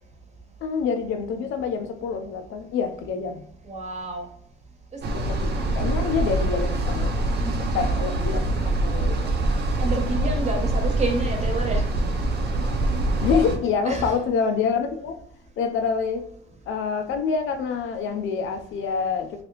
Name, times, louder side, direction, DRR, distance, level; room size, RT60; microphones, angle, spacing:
voice 1, 0.6-3.4 5.1-7.2 7.7-9.3 13.2-15.1 15.6-16.3 16.7-19.4, left 6 dB, 80° left, 7 dB, 0.5 m, -26 dB
voice 2, 3.6-4.3 7.4-7.8 8.5-8.6 9.8-11.8 13.8-14.1, right 2 dB, 35° right, 2 dB, 1.1 m, -29 dB
sound 1, 5.0-13.6, right 2 dB, 55° right, 0.8 m, -24 dB
3.0 x 2.8 x 3.1 m, 0.71 s
cardioid pair, 90°, 20 cm